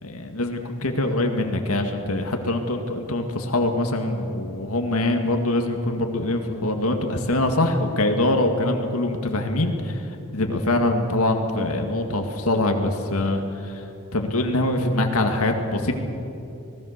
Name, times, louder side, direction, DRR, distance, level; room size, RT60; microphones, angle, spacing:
voice 1, 0.0-13.8 14.1-15.9, left 1 dB, 80° left, 4 dB, 2.1 m, -24 dB
25.5 x 18.5 x 6.7 m, 2.8 s
head